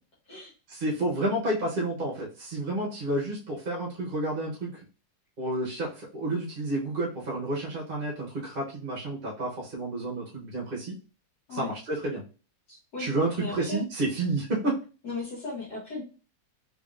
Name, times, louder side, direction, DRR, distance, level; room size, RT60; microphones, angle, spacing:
voice 1, 0.7-4.8 5.4-11.0 11.5-12.2 13.0-14.8, right 2 dB, 35° right, -4 dB, 0.9 m, -30 dB
voice 2, 12.7-13.1 13.4-13.8 15.0-16.0, left 3 dB, 60° left, -6 dB, 1.7 m, -36 dB
3.9 x 3.4 x 2.5 m, 0.35 s
omnidirectional pair, 2.1 m